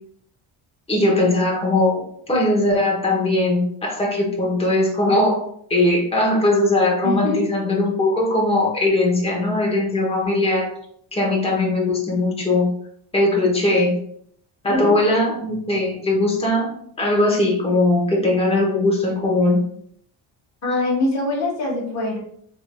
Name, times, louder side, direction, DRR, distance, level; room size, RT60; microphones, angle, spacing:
voice 1, 0.9-5.4 5.7-10.7 11.1-12.7 13.1-14.0 14.6-16.7 17.0-19.6, left 2 dB, 10° left, -2 dB, 1.0 m, -19 dB
voice 2, 7.0-7.4 14.6-14.9 20.6-22.2, left 2 dB, 30° left, -3 dB, 1.4 m, -23 dB
3.6 x 3.5 x 2.3 m, 0.66 s
cardioid pair, 125°, 49 cm